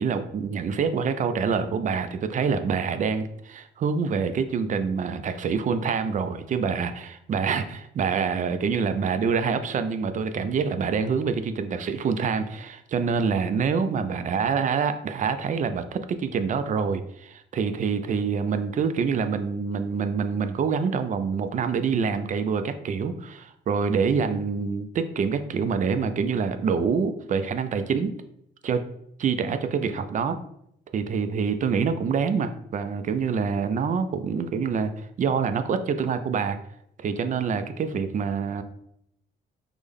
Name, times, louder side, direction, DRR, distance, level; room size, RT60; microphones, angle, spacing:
voice 1, 0.0-28.1 28.6-28.9 29.2-30.4 30.9-36.6 37.0-38.6, right 6 dB, 40° right, 10 dB, 0.4 m, -26 dB
3.3 x 2.1 x 3.6 m, 0.73 s
cardioid pair, 90°, 20 cm